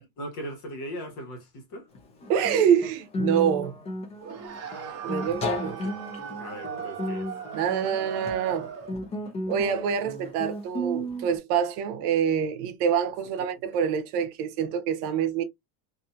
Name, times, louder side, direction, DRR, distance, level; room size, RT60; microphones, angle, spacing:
voice 1, 0.2-1.9 5.6-6.0 6.4-7.3 13.4-13.5, equal, 40° left, 1.3 m, -39 dB
Guitar, 1.9-11.4, left 1 dB, 15° left, 0.3 m, -34 dB
voice 2, 2.3-3.7 5.0-5.8 7.5-8.7 9.5-15.4, right 8 dB, 70° right, 0.8 m, -26 dB
sound 1, 4.2-9.0, right 8 dB, 30° right, 0.9 m, -38 dB
2.7 x 2.7 x 2.3 m
supercardioid pair, 145°, 48 cm